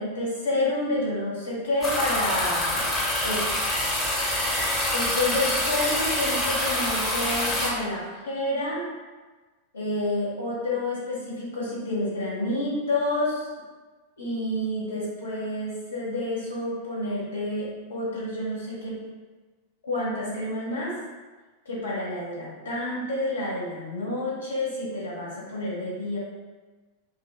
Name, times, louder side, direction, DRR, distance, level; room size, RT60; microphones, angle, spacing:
voice 1, 0.0-2.9 3.2-3.7 4.9-8.8 9.7-13.5 14.2-19.0 19.8-20.9 21.6-26.2, left 1 dB, 70° left, -7 dB, 1.4 m, -29 dB
sound 1, 1.8-7.7, left 1 dB, 25° left, 1.1 m, -26 dB
5.1 x 2.4 x 2.2 m, 1.3 s
figure-of-eight pair, 90°, 0 cm